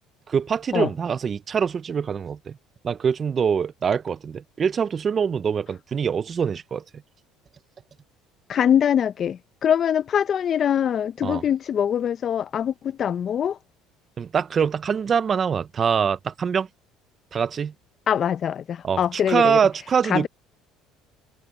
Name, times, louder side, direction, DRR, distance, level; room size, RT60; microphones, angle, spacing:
voice 1, 0.3-2.5 2.8-6.8 11.2-11.4 14.2-16.7 17.3-17.7 18.8-20.3, right 7 dB, 35° right, 0.7 m, -24 dB
voice 2, 8.5-13.6 18.1-19.6 20.1-20.3, left 9 dB, 45° left, 0.9 m, -23 dB
supercardioid pair, 100°, 0 cm